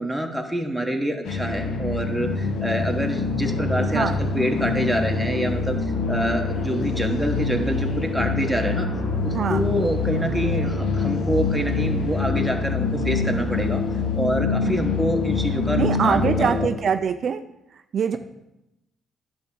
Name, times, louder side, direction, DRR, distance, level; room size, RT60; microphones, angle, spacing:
voice 1, 0.0-5.8 6.1-8.9 9.2-13.8 14.1-16.7, right 1 dB, 5° right, 2 dB, 1.2 m, -26 dB
sound 1, 1.3-16.7, left 4 dB, 75° left, 1.3 m, -25 dB
voice 2, 9.3-9.9 14.7-14.8 15.8-17.4 17.9-18.2, right 7 dB, 55° right, 8 dB, 0.4 m, -24 dB
10.0 x 3.5 x 7.0 m, 0.89 s
cardioid pair, 90°, 0 cm